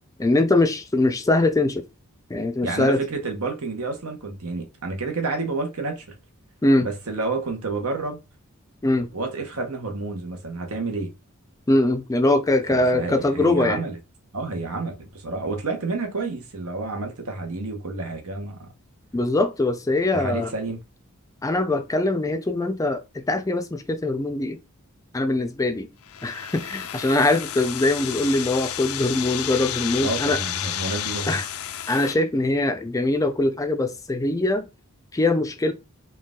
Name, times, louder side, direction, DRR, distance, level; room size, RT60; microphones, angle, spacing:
voice 1, 0.2-1.8 2.3-3.0 6.6-6.9 8.8-9.1 11.7-13.8 19.1-20.5 21.4-24.6 25.1-25.9 26.2-30.4 31.3-31.4 31.9-34.7 35.1-35.7, left 2 dB, 15° left, 0.4 m, -22 dB
voice 2, 2.6-6.1 6.8-8.2 9.1-11.1 12.7-14.0 14.3-18.7 20.1-20.8 30.0-31.4, right 3 dB, 80° right, 1.1 m, -29 dB
sound 1, 26.0-32.1, left 10 dB, 80° left, 0.5 m, -31 dB
4.5 x 2.4 x 3.6 m
head